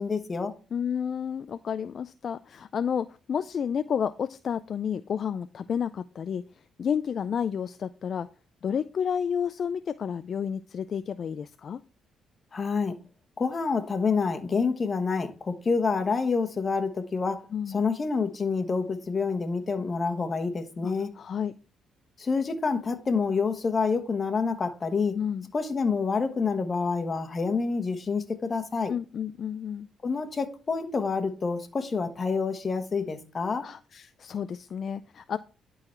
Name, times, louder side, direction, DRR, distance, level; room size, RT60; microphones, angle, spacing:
voice 1, 0.0-0.5 12.5-13.0 13.4-21.1 22.2-25.2 25.5-28.9 30.0-33.7, left 4 dB, 35° left, 1.2 m, -28 dB
voice 2, 0.7-6.4 6.8-8.3 8.6-11.8 17.5-17.8 20.8-21.5 25.1-25.5 28.9-29.9 33.6-35.4, left 7 dB, 55° left, 0.3 m, -31 dB
11.5 x 3.9 x 4.4 m
cardioid pair, 90°, 0 cm